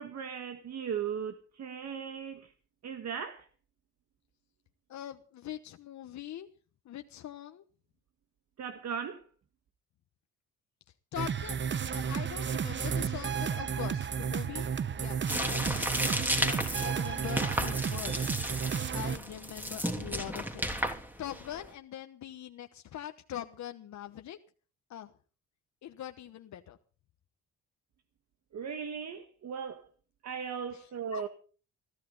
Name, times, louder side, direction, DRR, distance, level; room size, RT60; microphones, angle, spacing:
voice 1, 0.0-2.5 2.8-3.5 8.6-9.2 28.5-29.9 30.2-31.3, right 7 dB, 60° right, 1.7 m, -37 dB
voice 2, 4.9-6.5 6.8-7.6 11.1-14.7 14.9-15.2 15.5-16.0 16.4-18.4 18.9-24.4 24.9-25.1 25.8-26.8 30.7-30.8 31.1-31.3, left 11 dB, 70° left, 1.2 m, -42 dB
sound 1, 11.2-19.2, right 7 dB, 40° right, 0.9 m, -32 dB
sound 2, 15.3-21.7, equal, 5° right, 3.0 m, -34 dB
21.5 x 13.5 x 4.0 m
cardioid pair, 90°, 30 cm